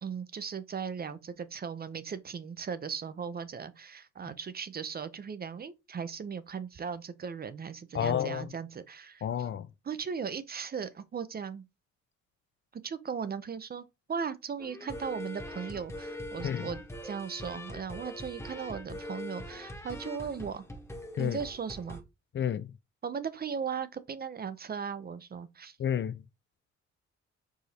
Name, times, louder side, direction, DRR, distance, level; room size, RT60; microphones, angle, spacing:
voice 1, 0.0-9.2 9.8-11.7 12.7-20.6 21.2-22.0 23.0-25.8, right 6 dB, 30° right, 0.5 m, -37 dB
voice 2, 7.9-8.5 9.2-9.7 16.4-16.7 21.2-21.4 22.3-22.7 25.8-26.2, left 9 dB, 40° left, 0.4 m, -30 dB
sound 1, 14.6-22.0, left 1 dB, 10° left, 1.0 m, -42 dB
4.8 x 2.6 x 4.1 m
cardioid pair, 90°, 30 cm